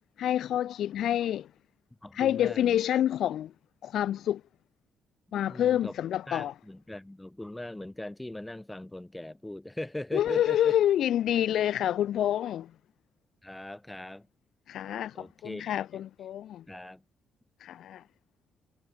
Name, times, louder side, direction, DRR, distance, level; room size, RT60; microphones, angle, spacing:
voice 1, 0.2-1.5 2.1-3.5 3.8-4.4 5.3-6.5 10.1-12.7 14.7-16.6 17.6-18.0, left 11 dB, 70° left, 0.3 m, -27 dB
voice 2, 2.0-3.0 5.5-6.0 6.3-10.7 13.4-14.3 15.1-15.8 16.7-17.0, left 1 dB, 10° left, 2.6 m, -40 dB
cardioid pair, 115°, 0 cm